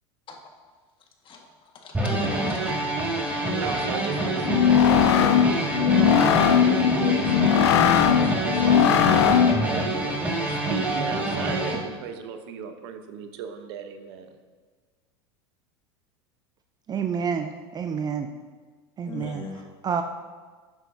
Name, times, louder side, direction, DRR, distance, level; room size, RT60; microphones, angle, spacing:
voice 1, 1.2-2.7 19.1-19.6, left 3 dB, 35° left, 1 dB, 1.7 m, -37 dB
sound 1, 1.9-11.8, right 2 dB, 10° right, 2.0 m, -26 dB
voice 2, 3.5-7.4 7.6-14.3, right 7 dB, 70° right, 7 dB, 1.0 m, -36 dB
sound 2, 4.4-9.7, left 9 dB, 80° left, 0.5 m, -19 dB
voice 3, 16.9-18.3 19.0-19.4 19.8-20.0, right 6 dB, 30° right, 7 dB, 0.5 m, -28 dB
12.0 x 8.1 x 2.8 m, 1.4 s
hypercardioid pair, 90°, 14 cm